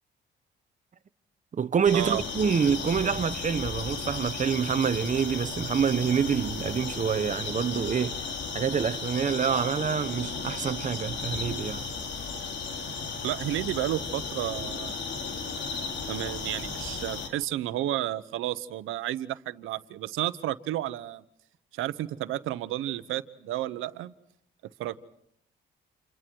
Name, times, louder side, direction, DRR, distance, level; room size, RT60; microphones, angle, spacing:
voice 1, 1.5-8.3 8.5-11.9, right 7 dB, 40° right, 1.1 m, -27 dB
sound 1, 1.8-17.3, left 4 dB, 65° left, 3.6 m, -35 dB
voice 2, 13.2-15.1 16.1-21.2 21.7-24.1 24.8-25.0, right 14 dB, 90° right, 1.1 m, -32 dB
30.0 x 28.0 x 4.7 m
cardioid pair, 90°, 20 cm